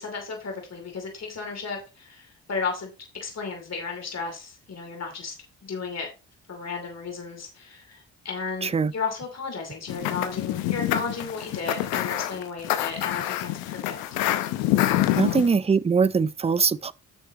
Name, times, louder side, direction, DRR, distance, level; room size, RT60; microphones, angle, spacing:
voice 1, 0.0-2.9 3.2-5.3 5.6-6.1 6.5-14.0 15.1-15.5, left 4 dB, 45° left, 2.7 m, -34 dB
sound 1, 9.9-15.5, left 14 dB, 90° left, 0.8 m, -26 dB
voice 2, 15.2-16.9, right 5 dB, 20° right, 0.4 m, -22 dB
9.7 x 6.5 x 2.9 m
hypercardioid pair, 50°, 35 cm